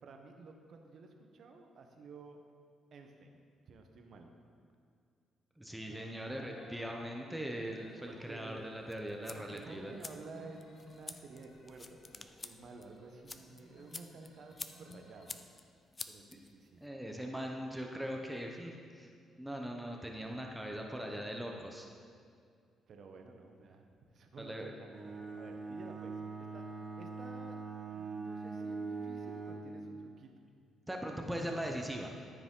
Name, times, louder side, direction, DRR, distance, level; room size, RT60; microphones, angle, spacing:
voice 1, 0.0-2.4 2.9-4.3 8.1-8.6 9.3-15.3 16.1-16.8 22.9-23.9 24.1-25.0 25.3-26.6 27.0-27.6 27.9-30.3, right 3 dB, 60° right, 4 dB, 0.9 m, -52 dB
voice 2, 5.6-9.9 16.8-19.1 19.4-21.9 24.4-24.7 30.9-32.1, equal, 5° right, 1 dB, 0.8 m, -40 dB
sound 1, 5.8-15.3, left 2 dB, 65° left, 1.9 m, -59 dB
sound 2, 8.9-16.9, left 3 dB, 30° left, 0.4 m, -50 dB
Bowed string instrument, 24.9-29.8, right 4 dB, 30° right, 1.2 m, -42 dB
13.0 x 4.9 x 3.8 m, 2.2 s
cardioid pair, 90°, 0 cm